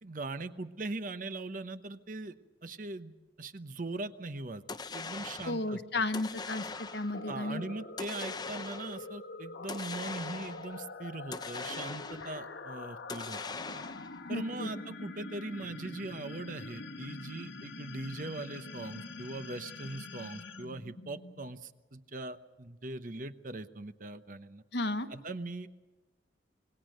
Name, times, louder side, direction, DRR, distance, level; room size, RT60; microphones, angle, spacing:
voice 1, 0.0-2.3 2.6-4.6 4.9-6.0 7.3-13.4 14.3-24.6 25.1-25.7, right 2 dB, 45° right, 11 dB, 0.9 m, -40 dB
sound 1, 4.7-5.7 6.1-7.2 8.0-9.0 9.7-10.7 11.3-12.4 13.1-14.2, left 4 dB, 20° left, 0.7 m, -41 dB
voice 2, 5.4-7.6 14.3-14.7 24.7-25.1, left 2 dB, 65° left, 10 dB, 1.1 m, -33 dB
sound 2, 6.5-21.6, left 3 dB, 90° left, 1.8 m, -45 dB
27.0 x 20.0 x 6.5 m, 1.2 s
head